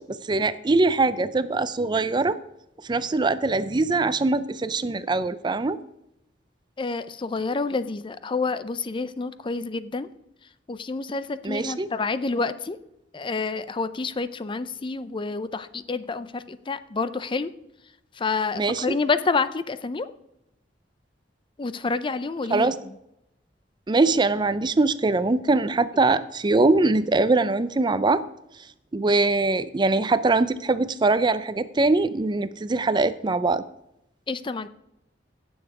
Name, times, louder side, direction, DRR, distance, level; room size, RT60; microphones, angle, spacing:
voice 1, 0.0-2.4 2.9-5.8 11.4-11.9 18.6-18.9 22.5-22.7 23.9-28.2 28.9-33.6, right 3 dB, 25° right, 14 dB, 0.5 m, -22 dB
voice 2, 6.8-10.1 10.7-12.8 13.1-17.5 18.1-20.1 21.6-22.9 34.3-34.7, left 4 dB, 30° left, 13 dB, 0.5 m, -28 dB
16.0 x 7.1 x 4.8 m, 0.84 s
head